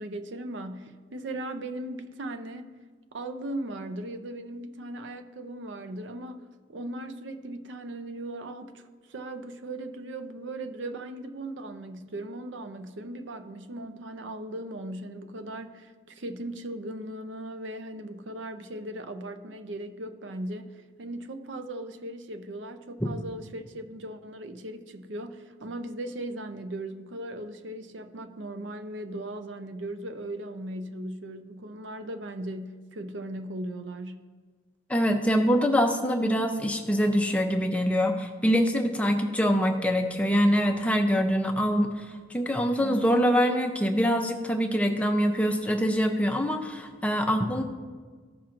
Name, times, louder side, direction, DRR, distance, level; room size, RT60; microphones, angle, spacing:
voice 1, 0.0-2.7 3.1-34.3, right 1 dB, 75° right, 9 dB, 0.6 m, -38 dB
voice 2, 34.9-47.6, equal, 5° left, 3 dB, 0.6 m, -24 dB
14.5 x 5.8 x 2.5 m, 1.5 s
head